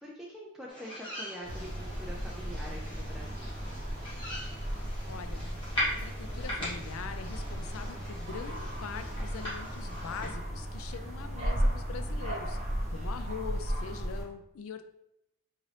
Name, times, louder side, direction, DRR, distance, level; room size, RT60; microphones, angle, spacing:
voice 1, 0.0-3.5, equal, ahead, -4 dB, 0.3 m, -45 dB
sound 1, 0.7-10.3, left 1 dB, 20° left, 1.4 m, -40 dB
sound 2, 1.4-14.2, equal, 30° right, 0.8 m, -35 dB
voice 2, 5.1-5.5 5.7-12.6 12.9-14.9, left 6 dB, 75° left, 8 dB, 0.4 m, -43 dB
3.9 x 2.6 x 3.2 m, 0.83 s
head